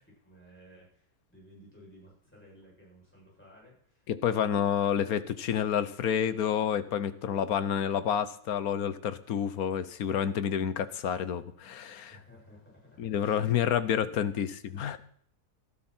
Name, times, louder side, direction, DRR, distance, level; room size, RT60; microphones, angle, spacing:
voice 1, 0.1-4.6 12.1-13.6 14.0-14.3, equal, 5° left, -5 dB, 7.4 m, -56 dB
voice 2, 4.1-12.1 13.0-15.0, left 8 dB, 70° left, 14 dB, 1.3 m, -29 dB
18.5 x 12.5 x 4.4 m, 0.64 s
omnidirectional pair, 1.7 m